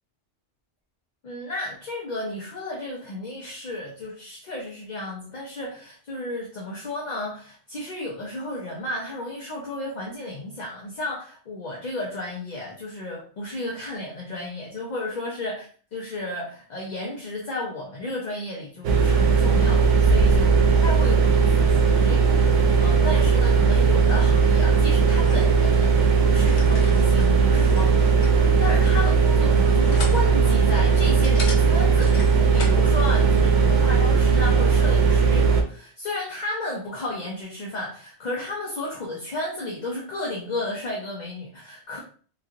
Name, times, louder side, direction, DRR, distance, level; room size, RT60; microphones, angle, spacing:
voice 1, 1.2-20.6 20.8-42.0, left 2 dB, 45° left, -3 dB, 0.6 m, -33 dB
sound 1, 18.8-35.6, right 5 dB, 90° right, 0.9 m, -18 dB
sound 2, 25.0-32.9, left 3 dB, 70° left, 1.0 m, -40 dB
3.2 x 2.7 x 2.4 m, 0.43 s
omnidirectional pair, 1.2 m